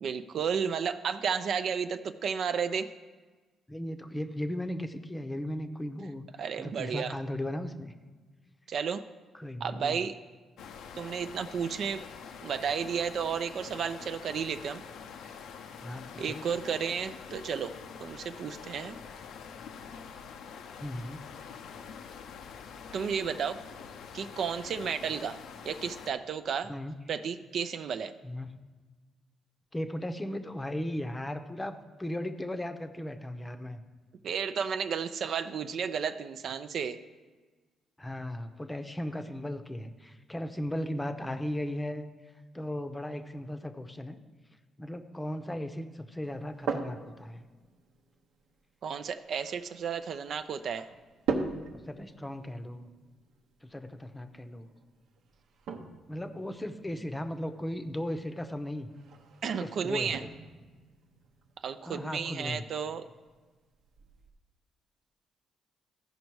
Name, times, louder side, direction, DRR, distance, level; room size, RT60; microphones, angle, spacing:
voice 1, 0.0-2.9 6.4-7.1 8.7-9.0 9.6-10.2 11.0-12.0 12.4-14.8 16.2-17.7 18.0-19.0 22.9-23.6 24.1-25.4 25.6-26.7 27.1-28.1 34.2-37.0 48.8-50.9 59.4-60.2 61.6-63.1, right 7 dB, 65° right, 10 dB, 0.4 m, -32 dB
voice 2, 3.7-6.2 6.6-7.9 9.4-10.0 15.8-16.4 20.8-21.2 26.7-26.9 28.2-28.5 29.7-33.8 38.0-42.1 42.5-44.2 44.8-47.4 51.9-52.9 53.6-54.7 56.1-58.9 59.6-60.3 61.8-62.6, left 1 dB, 15° left, 8 dB, 0.7 m, -36 dB
sound 1, 10.6-26.1, left 6 dB, 80° left, 0.6 m, -46 dB
sound 2, 46.2-64.3, right 5 dB, 80° right, 0.9 m, -42 dB
14.0 x 5.2 x 4.6 m, 1.3 s
cardioid pair, 90°, 0 cm